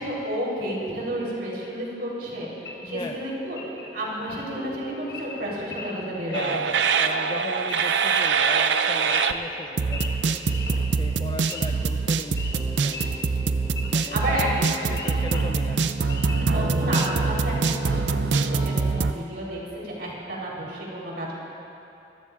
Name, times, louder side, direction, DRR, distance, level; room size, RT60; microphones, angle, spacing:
voice 1, 0.0-3.6 3.9-6.5 11.6-12.0 13.5-15.4 16.2-21.3, right 1 dB, 60° right, -5 dB, 3.9 m, -32 dB
sound 1, 1.0-4.3 4.5-19.0, left 1 dB, 20° right, 0.9 m, -44 dB
Wild animals / Idling, 2.6-17.3, left 3 dB, 65° left, 1.5 m, -40 dB
voice 2, 2.8-3.2 6.3-10.4 10.9-13.0 13.9-16.2 16.5-16.8, left 2 dB, 25° left, 4 dB, 0.4 m, -37 dB
sound 2, 6.3-9.3 9.8-19.1, right 5 dB, 85° right, 0.5 m, -24 dB
25.0 x 14.5 x 2.5 m, 2.9 s
head